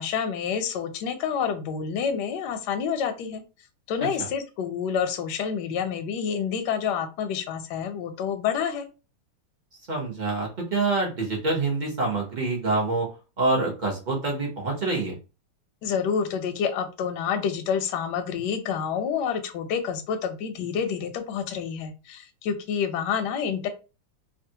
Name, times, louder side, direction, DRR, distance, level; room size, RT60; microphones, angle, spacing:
voice 1, 0.0-3.4 3.9-8.9 15.8-23.7, left 7 dB, 70° left, 7 dB, 1.1 m, -28 dB
voice 2, 9.9-13.1 13.4-15.1, right 3 dB, 45° right, -3 dB, 0.6 m, -26 dB
3.0 x 2.4 x 2.7 m, 0.31 s
omnidirectional pair, 2.1 m